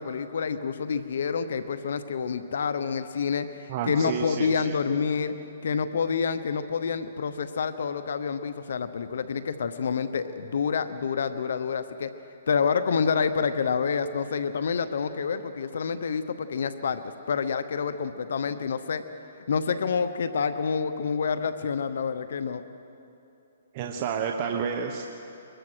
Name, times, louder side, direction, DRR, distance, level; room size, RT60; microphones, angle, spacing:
voice 1, 0.0-5.3 5.6-12.1 12.5-19.0 19.5-22.6, left 6 dB, 70° left, 11 dB, 1.0 m, -28 dB
voice 2, 3.7-4.7 23.7-25.1, right 6 dB, 35° right, 2 dB, 1.2 m, -30 dB
23.5 x 21.0 x 6.3 m, 2.8 s
hypercardioid pair, 155°, 0 cm